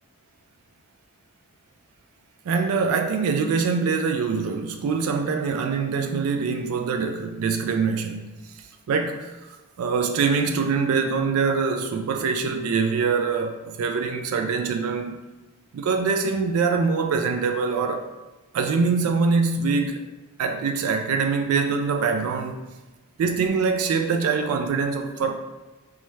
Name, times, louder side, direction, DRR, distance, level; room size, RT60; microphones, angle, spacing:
voice 1, 2.5-8.3 8.9-9.3 9.8-15.2 15.7-18.1 18.5-20.0 20.4-22.6 23.2-25.4, right 5 dB, 80° right, 0.3 m, -24 dB
4.1 x 2.3 x 3.1 m
head